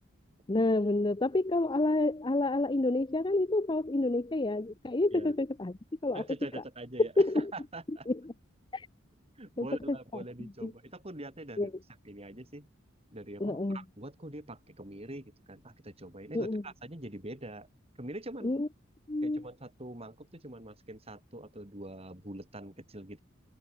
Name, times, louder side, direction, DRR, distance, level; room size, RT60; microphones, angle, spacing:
voice 1, 0.5-5.8 6.0-6.2 7.2-7.5 8.1-8.2 8.7-8.9 9.6-10.0 10.6-10.7 11.6-11.7 13.4-13.8 16.3-16.6 18.4-18.7 19.1-19.4, left 2 dB, 20° left, 0.6 m, -28 dB
voice 2, 6.1-8.1 9.4-11.7 12.0-12.7 13.1-17.7 18.0-18.5 19.2-23.2, right 1 dB, 30° right, 4.4 m, -44 dB
head